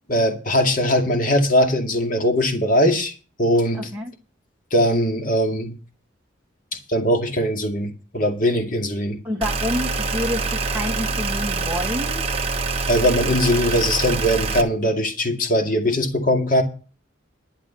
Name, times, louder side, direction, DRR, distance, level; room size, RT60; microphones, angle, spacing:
voice 1, 0.1-3.1 3.4-3.9 4.7-5.7 6.9-9.2 12.9-16.6, equal, 40° left, 5 dB, 2.2 m, -20 dB
voice 2, 3.7-4.1 9.2-12.2, left 1 dB, 10° right, -2 dB, 1.8 m, -28 dB
sound 1, 9.4-14.6, right 3 dB, 30° right, 1.3 m, -25 dB
12.0 x 7.3 x 7.0 m, 0.35 s
head